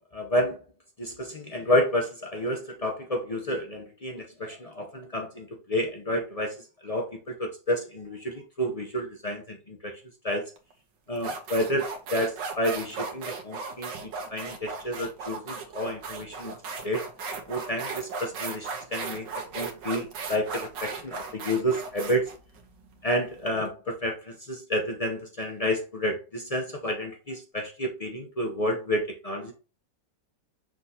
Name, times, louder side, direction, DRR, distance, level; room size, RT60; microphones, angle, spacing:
voice 1, 0.1-0.6 1.0-6.6 6.8-10.5 11.1-16.5 16.8-17.0 17.5-19.3 19.5-22.3 23.0-29.5, equal, 45° left, 2 dB, 0.4 m, -30 dB
sound 1, 10.6-10.7 11.2-23.5, right 4 dB, 80° right, 1.7 m, -36 dB
6.1 x 5.9 x 2.8 m, 0.33 s
omnidirectional pair, 1.9 m